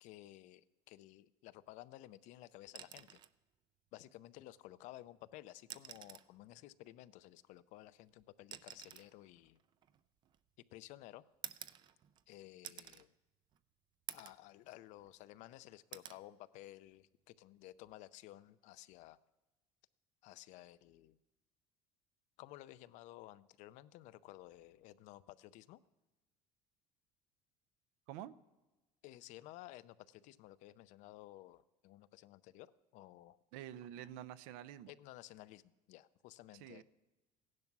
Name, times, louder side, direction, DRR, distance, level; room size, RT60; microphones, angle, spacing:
voice 1, 0.0-3.2 3.9-9.6 10.7-11.2 12.3-13.1 14.1-19.2 20.2-21.2 22.4-25.8 29.0-33.4 34.9-36.8, left 15 dB, 50° left, 16 dB, 0.5 m, -55 dB
sound 1, 2.7-3.4 4.8-4.9 5.6-6.4 7.5-10.6 11.4-12.3 12.6-13.1 13.5-13.6 14.1-14.5 14.9-15.5 15.9-16.2 17.7-17.9, right 10 dB, 30° right, 0.4 m, -51 dB
voice 2, 33.5-34.9 36.6-36.8, right 11 dB, 70° right, 16 dB, 0.6 m, -48 dB
16.5 x 11.0 x 6.0 m, 1.1 s
cardioid pair, 170°, 16 cm